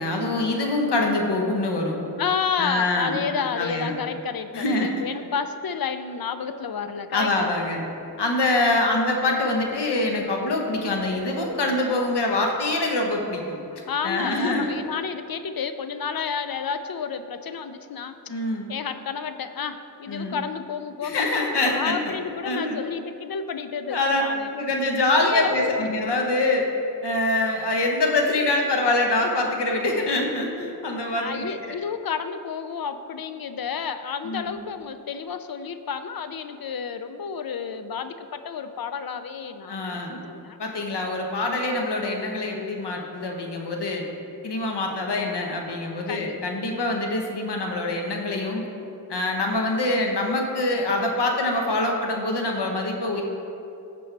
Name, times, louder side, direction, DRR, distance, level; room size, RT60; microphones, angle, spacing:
voice 1, 0.0-2.0 2.6-3.2 3.5-4.0 4.5-5.0 7.1-7.8 8.2-13.6 14.0-14.8 18.3-18.7 20.1-20.4 21.0-22.0 22.4-22.8 23.9-24.2 24.5-26.7 27.0-31.8 34.2-34.6 39.7-40.2 40.6-44.0 44.4-48.7 49.1-53.2, left 2 dB, 90° left, 1 dB, 1.2 m, -25 dB
voice 2, 2.2-7.5 13.7-18.2 18.7-21.3 21.7-24.5 25.2-25.9 31.2-40.6 46.1-46.4, left 6 dB, 60° left, 10 dB, 0.6 m, -31 dB
15.0 x 5.3 x 3.4 m, 2.7 s
wide cardioid pair, 60°, 40 cm